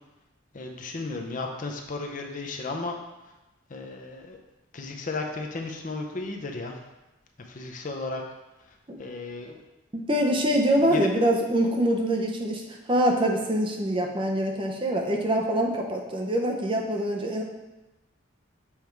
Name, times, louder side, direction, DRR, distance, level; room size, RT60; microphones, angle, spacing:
voice 1, 0.5-3.0 3.7-4.4 4.7-6.7 7.5-8.2 9.0-9.6 10.9-11.1, left 3 dB, 40° left, 3 dB, 0.6 m, -34 dB
voice 2, 9.9-17.4, right 1 dB, 25° right, 1 dB, 0.6 m, -24 dB
7.1 x 3.4 x 4.6 m, 1.0 s
head